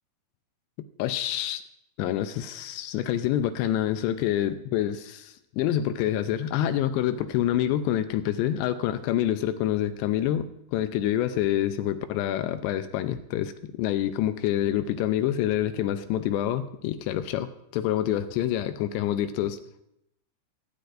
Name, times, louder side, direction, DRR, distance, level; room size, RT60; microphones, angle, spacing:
voice 1, 1.0-1.6 2.0-19.6, left 11 dB, 80° left, 10 dB, 2.6 m, -27 dB
22.0 x 9.6 x 2.5 m, 0.79 s
omnidirectional pair, 5.3 m